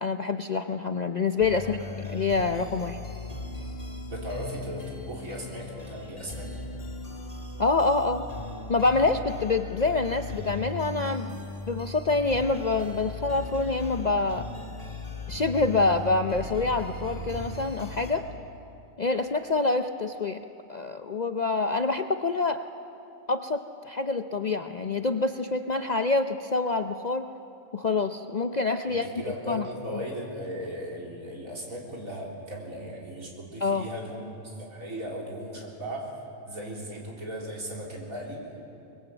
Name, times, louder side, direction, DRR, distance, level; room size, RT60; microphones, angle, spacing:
voice 1, 0.0-1.8 2.1-3.0 7.6-8.2 8.7-14.5 15.3-18.2 19.0-20.4 20.7-22.6 23.3-27.3 27.7-29.1 29.5-29.6 33.6-33.9, left 3 dB, 45° left, 7 dB, 0.5 m, -26 dB
sound 1, 1.4-18.1, left 2 dB, 25° left, 3.1 m, -38 dB
voice 2, 4.1-6.5 28.9-36.1 36.5-38.5, equal, 80° right, -2 dB, 4.3 m, -37 dB
24.0 x 21.5 x 8.0 m, 2.8 s
omnidirectional pair, 1.4 m